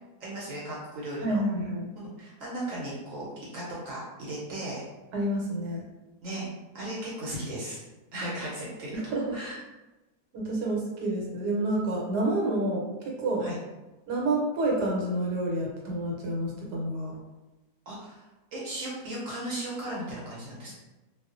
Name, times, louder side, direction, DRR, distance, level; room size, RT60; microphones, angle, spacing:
voice 1, 0.2-1.4 1.9-4.8 6.2-6.5 6.7-7.8 8.1-9.6 13.4-13.6 17.9-20.7, right 1 dB, 60° right, -6 dB, 1.0 m, -36 dB
voice 2, 1.2-1.9 5.1-5.8 8.9-9.4 10.3-13.5 14.1-17.2, right 1 dB, 80° right, -2 dB, 1.2 m, -29 dB
2.4 x 2.3 x 2.4 m, 1.1 s
omnidirectional pair, 1.7 m